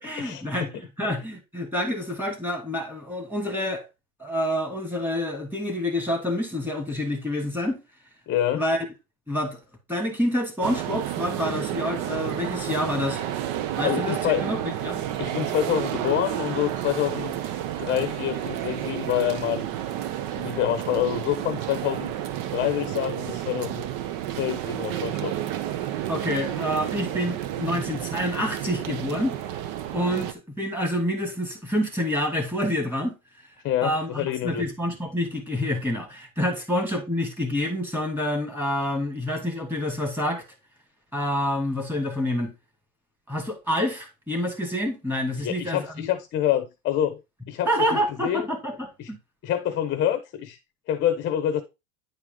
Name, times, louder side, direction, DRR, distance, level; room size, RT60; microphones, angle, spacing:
voice 1, 0.0-3.8 4.2-7.8 8.5-8.8 9.3-9.6 9.9-13.3 13.8-15.0 26.1-29.4 29.9-33.1 33.8-40.4 41.1-42.5 43.3-46.1 47.7-49.2, left 1 dB, 5° right, 2.5 m, -27 dB
voice 2, 8.3-8.6 13.8-14.5 15.2-20.0 20.3-22.1 22.5-23.8 24.4-25.4 33.6-34.6 45.4-47.2 47.5-48.5 49.0-49.1 49.4-50.6 50.9-51.6, left 11 dB, 25° left, 1.0 m, -27 dB
sound 1, 10.6-30.3, right 12 dB, 45° right, 1.0 m, -31 dB
10.0 x 4.8 x 3.8 m
supercardioid pair, 140°, 44 cm